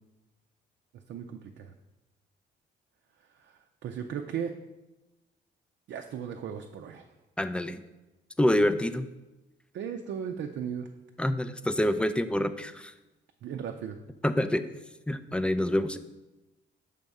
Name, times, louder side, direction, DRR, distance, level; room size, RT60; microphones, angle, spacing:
voice 1, 1.1-1.7 3.4-4.5 5.9-7.1 9.7-10.9 13.4-14.0, right 8 dB, 65° right, 5 dB, 0.5 m, -36 dB
voice 2, 7.4-7.8 8.4-9.1 11.2-12.9 14.2-14.7 15.1-16.0, left 1 dB, 5° left, 11 dB, 0.3 m, -26 dB
6.6 x 3.5 x 5.3 m, 1.0 s
cardioid pair, 90°, 20 cm